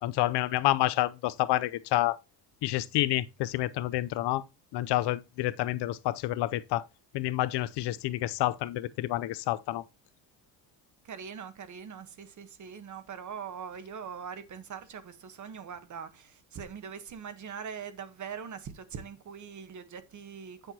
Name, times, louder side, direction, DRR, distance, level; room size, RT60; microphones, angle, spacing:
voice 1, 0.0-2.2 2.6-4.5 4.7-6.9 7.1-9.8, left 16 dB, 75° left, 0.6 m, -29 dB
voice 2, 11.0-20.7, right 7 dB, 45° right, 1.2 m, -42 dB
9.1 x 6.5 x 2.8 m
cardioid pair, 110°, 41 cm